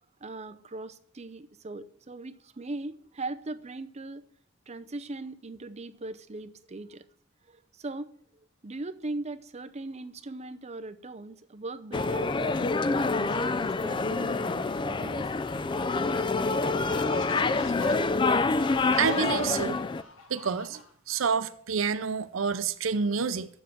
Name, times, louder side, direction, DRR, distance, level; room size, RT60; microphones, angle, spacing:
voice 1, 0.2-4.2 4.7-7.0 7.5-8.1 8.6-15.3, right 2 dB, 35° right, 0.6 m, -39 dB
sound 1, 11.9-20.0, left 3 dB, 25° left, 0.4 m, -27 dB
sound 2, 16.2-21.2, left 2 dB, 90° left, 1.4 m, -44 dB
voice 2, 19.0-19.8 20.3-20.8 21.1-23.5, right 6 dB, 85° right, 0.6 m, -28 dB
7.3 x 7.1 x 7.6 m
head